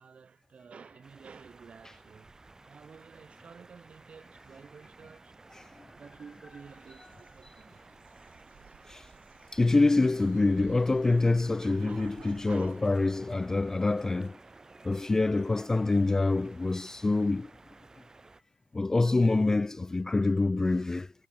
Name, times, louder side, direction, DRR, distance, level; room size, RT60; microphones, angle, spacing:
voice 1, 0.0-2.3 2.6-5.4 5.9-7.8 11.8-12.1 12.5-12.8, right 6 dB, 35° right, 3.0 m, -51 dB
sound 1, 1.0-18.4, right 3 dB, 20° right, 1.9 m, -55 dB
voice 2, 5.5-5.9 8.9-9.1 9.5-14.4 14.8-17.5 18.7-21.1, left 3 dB, 15° left, 0.4 m, -26 dB
sound 2, 6.5-12.8, right 11 dB, 55° right, 1.9 m, -56 dB
hypercardioid pair, 70°, 4 cm